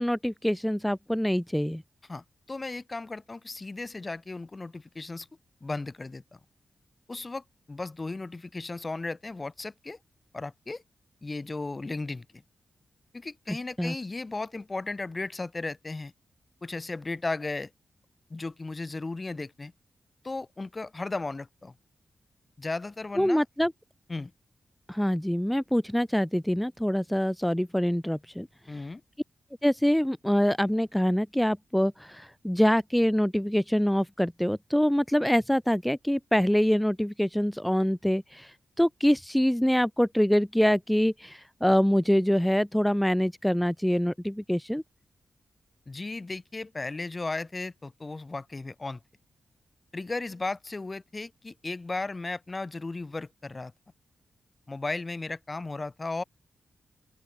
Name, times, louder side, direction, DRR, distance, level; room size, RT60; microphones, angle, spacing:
voice 1, 0.0-1.8 13.5-14.0 23.2-23.7 24.9-28.5 29.6-44.8, equal, 5° left, 0.6 m, -25 dB
voice 2, 2.1-5.3 5.6-6.4 7.1-10.0 10.3-10.8 11.2-12.3 13.1-16.1 16.6-17.7 18.3-19.7 20.2-21.7 22.6-23.4 24.1-24.3 28.7-29.0 45.9-49.0 49.9-53.7 54.7-56.2, left 3 dB, 35° left, 4.5 m, -35 dB
open air
cardioid pair, 50°, 0 cm